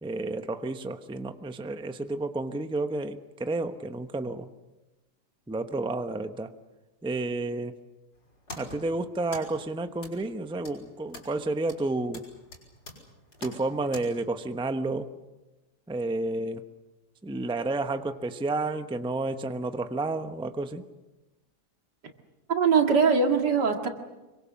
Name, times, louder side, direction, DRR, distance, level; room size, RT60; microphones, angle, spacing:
voice 1, 0.0-4.5 5.5-6.5 7.0-7.7 8.6-12.3 13.4-15.1 15.9-16.6 17.2-20.8, right 2 dB, 5° right, 8 dB, 0.6 m, -31 dB
sound 1, 8.1-14.0, left 1 dB, 75° left, 6.8 m, -46 dB
voice 2, 22.5-23.9, right 5 dB, 85° right, 4 dB, 2.8 m, -22 dB
26.0 x 23.5 x 7.5 m, 1.1 s
omnidirectional pair, 1.8 m